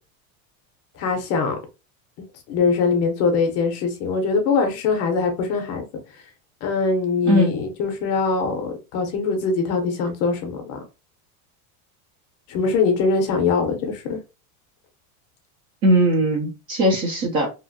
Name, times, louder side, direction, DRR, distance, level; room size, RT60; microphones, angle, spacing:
voice 1, 1.0-1.6 2.5-5.8 6.6-10.8 12.5-14.2, left 4 dB, 35° left, 0.6 m, -22 dB
voice 2, 7.3-7.6 15.8-17.5, right 1 dB, 30° right, 0.4 m, -19 dB
2.8 x 2.5 x 2.5 m
supercardioid pair, 165°, 42 cm